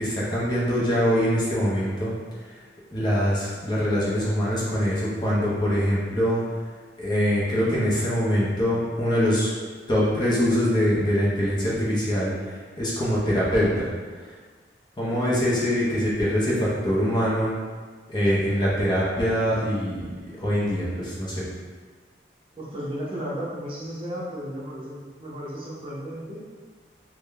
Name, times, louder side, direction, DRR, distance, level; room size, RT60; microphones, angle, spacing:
voice 1, 0.0-2.1 2.9-6.4 7.0-9.5 9.9-13.9 15.0-17.5 18.1-20.0 20.4-21.4, equal, 25° left, -7 dB, 0.6 m, -23 dB
voice 2, 22.5-26.4, equal, 30° right, -7 dB, 0.7 m, -34 dB
3.5 x 2.1 x 3.3 m, 1.5 s
head